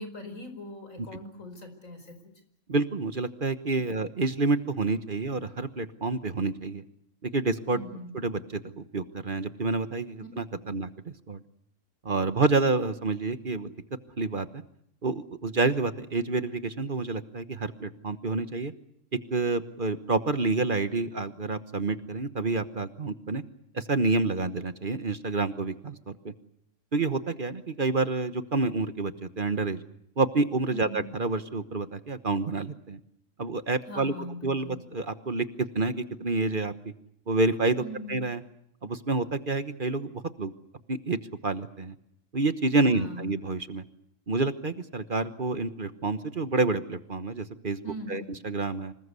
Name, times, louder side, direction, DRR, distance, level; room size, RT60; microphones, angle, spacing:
voice 1, 0.0-2.2 3.8-4.1 7.7-8.2 10.6-10.8 30.7-31.1 33.9-34.8 37.8-38.2 42.8-43.3 47.8-48.4, equal, 85° left, 8 dB, 5.5 m, -41 dB
voice 2, 2.7-6.8 7.2-7.8 8.1-11.4 12.0-13.7 14.2-14.6 15.0-18.7 19.3-23.4 23.7-26.3 26.9-29.8 30.2-33.0 33.4-34.1 34.4-36.9 37.3-37.8 38.1-38.4 38.8-40.5 40.9-41.9 42.3-43.8 44.3-47.8 48.1-48.9, right 3 dB, 40° right, 11 dB, 1.3 m, -28 dB
26.5 x 20.0 x 8.2 m, 0.72 s
omnidirectional pair, 1.3 m